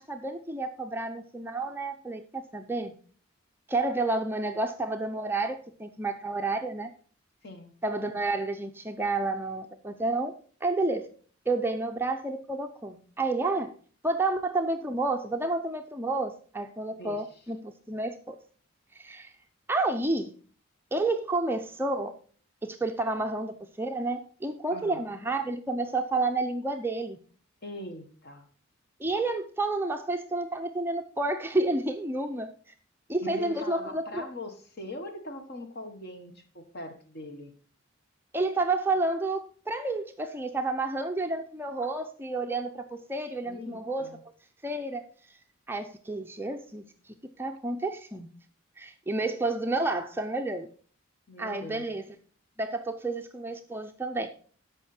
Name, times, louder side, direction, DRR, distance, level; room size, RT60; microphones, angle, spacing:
voice 1, 0.0-2.9 3.7-6.9 7.8-10.3 10.6-11.1 11.5-13.7 14.0-18.4 19.0-19.3 19.7-20.3 20.9-22.1 22.6-27.2 29.0-32.5 33.1-34.3 38.3-44.1 44.6-45.0 45.7-46.8 47.4-48.3 48.8-50.7 51.4-52.0 52.6-54.3, right 2 dB, 10° right, 0.5 m, -30 dB
voice 2, 7.4-7.7 16.9-17.4 24.7-25.0 27.6-28.5 33.2-37.5 43.4-44.2 51.3-51.9, left 2 dB, 50° left, 1.5 m, -41 dB
13.0 x 5.4 x 4.3 m
head